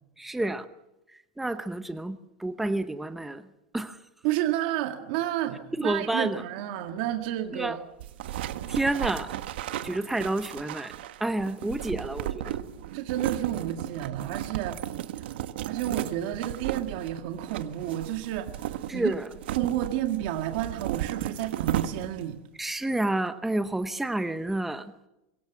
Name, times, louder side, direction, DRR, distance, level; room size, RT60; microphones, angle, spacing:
voice 1, 0.2-0.7 1.4-3.4 3.7-4.0 5.8-6.4 7.5-7.8 8.7-9.3 9.8-10.9 11.2-12.6 18.9-19.3 22.6-24.9, right 2 dB, 5° right, 10 dB, 0.8 m, -29 dB
voice 2, 4.2-7.8 12.9-14.8 15.2-15.4 15.7-19.1 19.6-22.4, right 12 dB, 55° right, 5 dB, 1.9 m, -31 dB
sound 1, 8.0-22.3, right 12 dB, 85° right, 1.4 m, -34 dB
25.0 x 22.5 x 7.2 m, 0.93 s
supercardioid pair, 165°, 6 cm